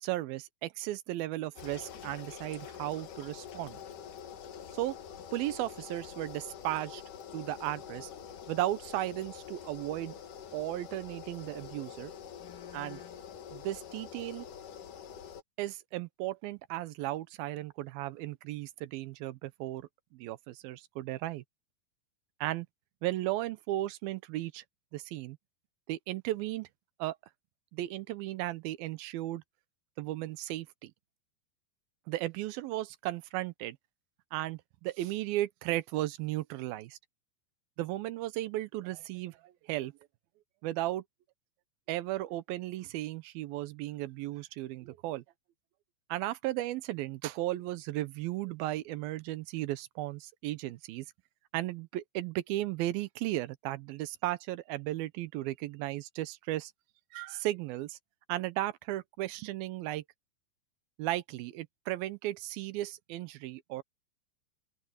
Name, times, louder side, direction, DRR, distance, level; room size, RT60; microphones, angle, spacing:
voice 1, 0.0-3.8 4.7-5.0 5.3-7.0 7.3-8.1 8.5-10.2 10.5-12.1 12.7-13.0 13.5-14.5 15.6-21.4 22.4-22.7 23.0-24.6 24.9-25.4 25.9-26.7 27.0-27.2 27.7-29.4 30.0-30.9 32.1-33.8 34.3-37.0 37.8-39.9 40.6-41.0 41.9-45.2 46.1-51.1 51.5-56.7 57.1-58.0 58.3-60.0 61.0-63.8, right 15 dB, 90° right, 2.7 m, -35 dB
sound 1, 1.6-15.4, left 8 dB, 65° left, 3.0 m, -46 dB
open air
omnidirectional pair, 4.1 m